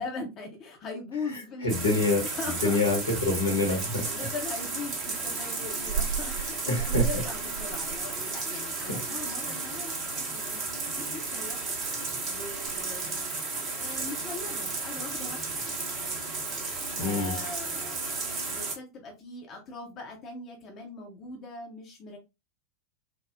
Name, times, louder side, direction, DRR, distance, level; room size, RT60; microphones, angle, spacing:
voice 1, 0.0-1.7 2.3-2.8 3.7-10.7 11.0-11.7 12.3-13.3 13.8-15.9 17.0-22.2, left 3 dB, 30° left, 0.7 m, -40 dB
voice 2, 1.3-2.3 2.6-4.1 6.4-7.1 8.5-9.0 17.0-17.3, left 2 dB, 70° left, 1.2 m, -27 dB
sound 1, 1.7-18.7, right 4 dB, 35° right, 0.9 m, -33 dB
3.5 x 2.0 x 2.5 m
figure-of-eight pair, 90°, 0 cm